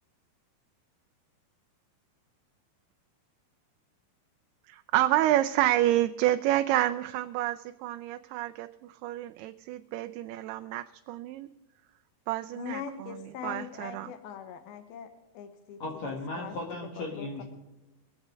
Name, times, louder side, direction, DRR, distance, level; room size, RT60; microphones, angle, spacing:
voice 1, 4.7-11.5 12.3-13.2 13.4-14.1, right 14 dB, 90° right, 8 dB, 2.6 m, -28 dB
voice 2, 12.5-15.8 16.4-16.5 17.0-17.4, left 8 dB, 75° left, 8 dB, 2.9 m, -41 dB
voice 3, 15.8-17.4, left 2 dB, 50° left, 0 dB, 2.8 m, -36 dB
22.5 x 8.1 x 5.1 m, 0.99 s
omnidirectional pair, 4.4 m